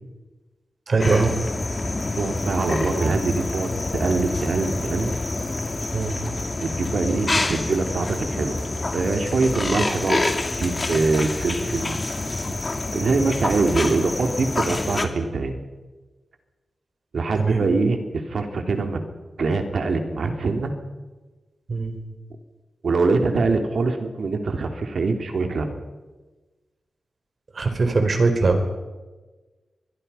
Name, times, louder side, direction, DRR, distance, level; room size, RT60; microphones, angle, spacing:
voice 1, 0.9-1.3 5.9-6.1 17.3-17.6 21.7-22.0 27.5-28.6, right 3 dB, 55° right, 7 dB, 4.3 m, -20 dB
sound 1, 1.0-15.1, left 2 dB, 35° left, 2.8 m, -27 dB
voice 2, 2.1-5.1 6.6-8.6 8.9-12.2 12.9-15.6 17.1-19.0 19.4-20.7 22.8-25.8, right 3 dB, 70° right, 5 dB, 3.3 m, -24 dB
26.5 x 22.0 x 5.8 m, 1.2 s
cardioid pair, 65°, 0 cm